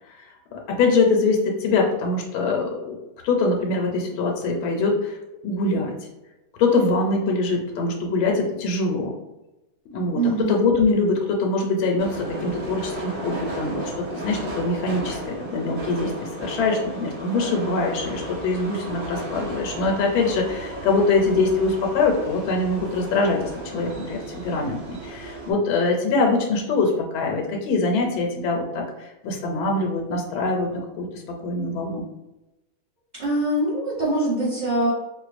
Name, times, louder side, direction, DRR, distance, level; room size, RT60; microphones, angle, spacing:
voice 1, 0.5-3.0 3.2-5.2 5.4-5.9 6.6-9.1 9.9-30.7 30.9-32.0, left 3 dB, 85° left, 1 dB, 1.4 m, -23 dB
voice 2, 10.1-10.7 33.1-34.9, right 2 dB, 35° right, -10 dB, 0.7 m, -23 dB
sound 1, 12.0-25.5, right 1 dB, 75° right, 1.6 m, -34 dB
4.4 x 2.2 x 2.5 m, 0.98 s
omnidirectional pair, 2.2 m